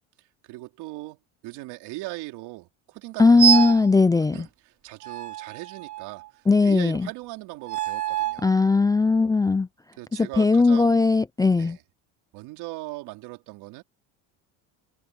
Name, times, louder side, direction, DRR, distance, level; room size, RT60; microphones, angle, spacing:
voice 1, 0.5-1.2 1.4-3.8 4.3-4.5 4.8-6.2 6.6-8.5 10.0-11.0 11.6-11.8 12.3-13.8, right 20 dB, 75° right, 3.8 m, -39 dB
voice 2, 3.2-4.4 6.5-7.1 8.4-9.7 10.1-11.8, left 3 dB, 10° left, 0.4 m, -19 dB
sound 1, 3.4-3.9 5.0-6.3 7.6-8.5, right 11 dB, 45° right, 4.0 m, -26 dB
cardioid pair, 120°, 39 cm